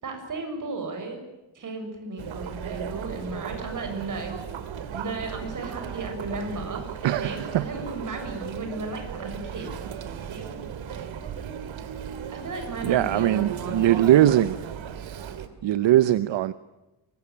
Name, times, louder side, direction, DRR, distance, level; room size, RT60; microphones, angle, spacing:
voice 1, 0.0-1.2 1.5-4.4 4.9-9.7 10.3-10.5 10.9-11.2 12.3-14.3, right 3 dB, 40° right, 5 dB, 7.0 m, -35 dB
Chatter, 2.2-15.5, right 8 dB, 90° right, 2.6 m, -36 dB
voice 2, 7.0-7.7 12.8-14.6 15.6-16.5, right 12 dB, 70° right, 14 dB, 0.9 m, -21 dB
24.0 x 21.5 x 9.8 m, 1.0 s
wide cardioid pair, 170°, 45 cm